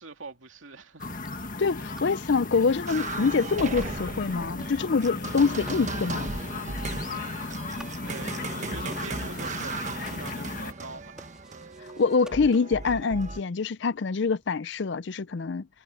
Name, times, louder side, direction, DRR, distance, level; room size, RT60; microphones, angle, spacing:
voice 1, 0.0-1.5 6.9-11.2, right 3 dB, 70° right, 2.6 m, -44 dB
sound 1, 0.8-12.9, equal, 5° right, 3.6 m, -55 dB
sound 2, 1.0-10.7, left 3 dB, 40° left, 1.8 m, -36 dB
voice 2, 1.6-6.3 12.0-15.7, left 4 dB, 55° left, 0.5 m, -25 dB
sound 3, 2.9-13.4, right 3 dB, 35° right, 1.4 m, -37 dB
head